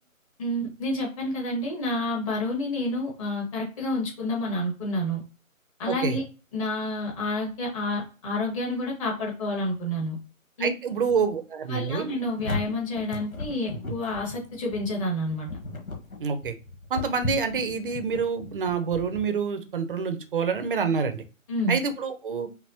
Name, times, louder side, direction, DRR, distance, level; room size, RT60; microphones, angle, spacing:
voice 1, 0.4-5.2 5.8-6.2 6.5-10.1 10.6-10.7 11.7-15.5 21.5-21.8, left 1 dB, 25° left, -2 dB, 1.4 m, -29 dB
voice 2, 5.9-6.2 10.6-12.1 16.2-16.5 16.9-21.2 21.7-22.5, right 5 dB, 40° right, 8 dB, 0.6 m, -27 dB
sound 1, 12.1-19.3, left 2 dB, 85° left, 1.4 m, -36 dB
5.4 x 2.1 x 2.8 m, 0.34 s
figure-of-eight pair, 145°, 41 cm